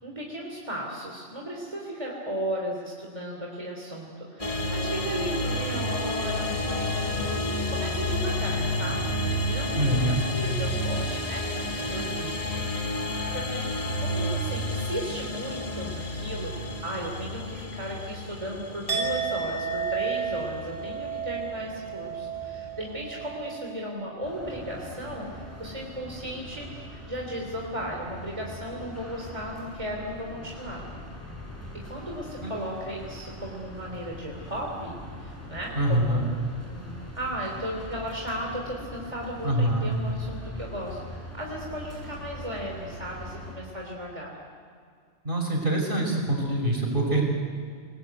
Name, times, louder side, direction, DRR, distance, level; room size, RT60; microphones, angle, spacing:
voice 1, 0.0-12.8 13.3-13.7 14.0-26.7 27.1-30.8 31.8-36.3 36.7-44.3, equal, 30° right, -1 dB, 3.5 m, -35 dB
sound 1, 4.4-23.5, left 1 dB, 30° left, 1.7 m, -31 dB
voice 2, 9.8-10.2 32.4-32.5 35.8-36.2 39.4-40.0 45.2-47.2, right 1 dB, 50° right, 0 dB, 5.9 m, -25 dB
Chink clink, 18.9-24.8 25.1-25.5, right 6 dB, 55° left, 7.0 m, -33 dB
sound 2, 24.2-43.5, equal, 15° left, 5.7 m, -42 dB
29.5 x 20.5 x 8.2 m, 2.1 s
omnidirectional pair, 1.1 m